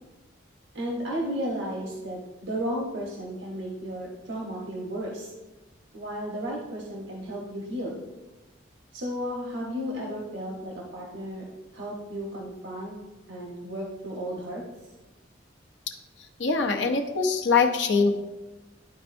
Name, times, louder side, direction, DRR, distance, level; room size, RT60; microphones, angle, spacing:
voice 1, 0.7-5.3 5.9-8.0 8.9-11.4 11.7-12.9 13.3-14.6, equal, 75° right, -3 dB, 1.2 m, -33 dB
voice 2, 16.4-18.1, left 4 dB, 75° left, 3 dB, 0.8 m, -23 dB
12.0 x 4.5 x 2.6 m, 1.1 s
head